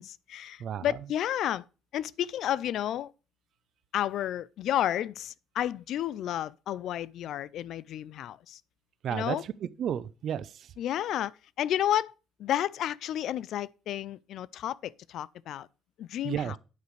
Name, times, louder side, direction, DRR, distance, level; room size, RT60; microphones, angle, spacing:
voice 1, 0.0-1.6 1.9-3.1 3.9-8.6 9.1-9.4 10.8-12.1 12.4-15.7 16.0-16.6, left 11 dB, 60° left, 0.4 m, -31 dB
voice 2, 9.0-10.7 16.2-16.6, right 9 dB, 50° right, 0.6 m, -32 dB
9.3 x 8.0 x 3.2 m
cardioid pair, 145°, 0 cm